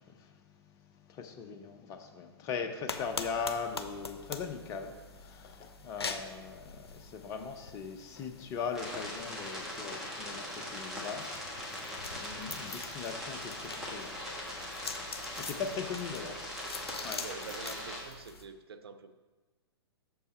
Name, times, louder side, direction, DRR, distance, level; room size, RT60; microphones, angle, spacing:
voice 1, 0.0-16.3 17.0-17.2, left 6 dB, 25° left, 0.7 m, -40 dB
sound 1, 2.9-18.5, left 4 dB, 70° left, 0.6 m, -45 dB
sound 2, 8.7-18.0, left 1 dB, 5° right, 1.4 m, -41 dB
voice 2, 15.5-16.4 17.1-19.2, right 5 dB, 65° right, 0.6 m, -47 dB
6.6 x 5.5 x 4.3 m
figure-of-eight pair, 115°, 14 cm